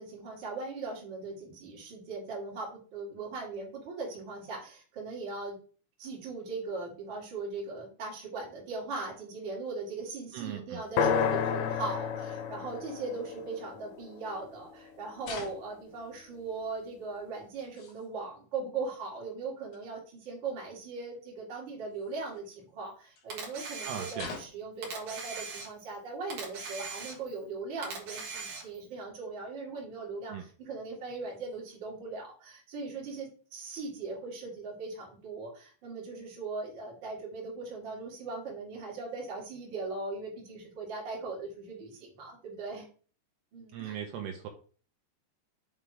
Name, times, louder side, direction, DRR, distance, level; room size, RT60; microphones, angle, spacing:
voice 1, 0.0-5.6 6.0-42.9 43.5-44.0, right 3 dB, 35° right, -2 dB, 2.1 m, -39 dB
voice 2, 10.3-10.8 23.9-24.3 30.3-30.5 43.7-44.5, right 8 dB, 75° right, 4 dB, 2.8 m, -38 dB
sound 1, 11.0-14.9, left 7 dB, 80° left, 2.8 m, -31 dB
sound 2, 15.2-16.0 17.2-17.3 17.6-18.1 19.7-19.9 21.9-22.6 23.1-23.3 24.1-24.7 25.8-25.9 26.3-26.9 27.4-27.5 28.6-28.7 29.8-29.9 31.3-31.6, left 5 dB, 60° left, 1.8 m, -46 dB
Camera, 23.3-24.4 24.8-26.0 26.3-27.4 27.8-28.9, right 4 dB, 55° right, 2.3 m, -40 dB
7.0 x 3.7 x 4.8 m, 0.41 s
omnidirectional pair, 5.1 m